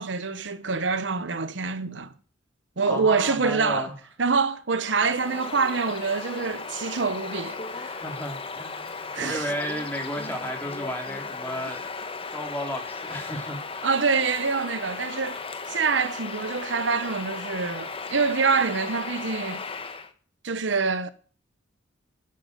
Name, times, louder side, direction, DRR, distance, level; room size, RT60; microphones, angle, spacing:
voice 1, 0.0-2.1 2.8-3.9 4.2-8.0 9.1-9.5 13.8-15.4 15.7-19.6 20.4-21.1, right 4 dB, 70° right, 0.9 m, -26 dB
voice 2, 2.9-3.9 7.9-11.9 12.3-13.9, equal, 10° left, 3.4 m, -33 dB
Bird vocalization bird call bird song, 4.8-20.1, left 4 dB, 30° left, 1.3 m, -36 dB
10.5 x 9.1 x 9.5 m
head